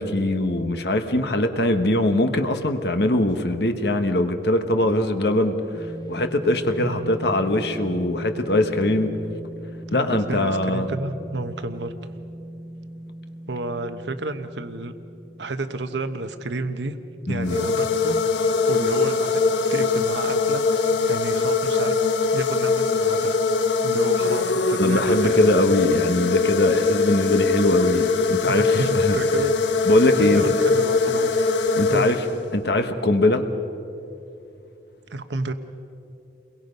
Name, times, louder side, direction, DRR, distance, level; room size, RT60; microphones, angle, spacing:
voice 1, 0.0-9.1 9.9-10.9 17.3-17.7 24.8-29.2 29.9-30.5 31.8-32.2 32.5-33.4, left 1 dB, 65° left, 7 dB, 1.4 m, -22 dB
sound 1, 5.7-20.1, right 1 dB, 20° left, 1.7 m, -40 dB
voice 2, 6.8-7.1 9.9-11.9 13.5-14.9 15.4-17.0 17.2-18.2 18.7-19.4 19.7-20.6 21.0-22.0 22.3-23.4 23.8-25.5 28.4-29.6 30.2-31.6 31.9-32.1 35.1-35.5, right 2 dB, 75° right, 9 dB, 1.0 m, -30 dB
sound 2, 17.4-32.6, left 4 dB, 85° left, 1.0 m, -22 dB
30.0 x 22.5 x 5.4 m, 2.8 s
head